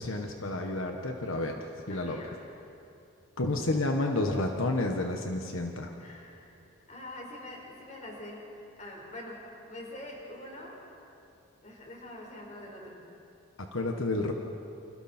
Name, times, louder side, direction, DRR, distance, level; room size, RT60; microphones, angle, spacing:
voice 1, 0.0-1.5 1.9-2.2 3.4-5.9 13.6-14.3, left 2 dB, 85° left, 3 dB, 1.5 m, -30 dB
voice 2, 1.9-2.4 6.0-6.5 6.9-10.8 11.6-13.1, left 1 dB, 35° left, -1 dB, 4.8 m, -44 dB
29.0 x 27.5 x 4.5 m, 2.7 s
head